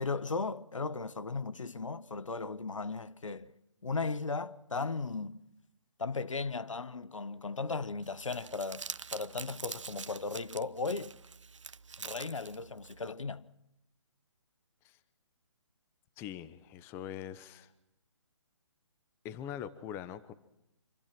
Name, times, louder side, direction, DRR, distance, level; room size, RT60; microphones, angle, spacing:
voice 1, 0.0-3.5 3.8-5.4 6.0-11.2 12.0-13.4, left 4 dB, 85° left, 1.3 m, -36 dB
Crumpling crinkling, 8.0-13.1, right 5 dB, 75° right, 1.0 m, -45 dB
voice 2, 16.2-17.7 19.2-20.3, left 10 dB, 15° left, 0.9 m, -42 dB
26.5 x 24.5 x 6.0 m
hypercardioid pair, 150°, 16 cm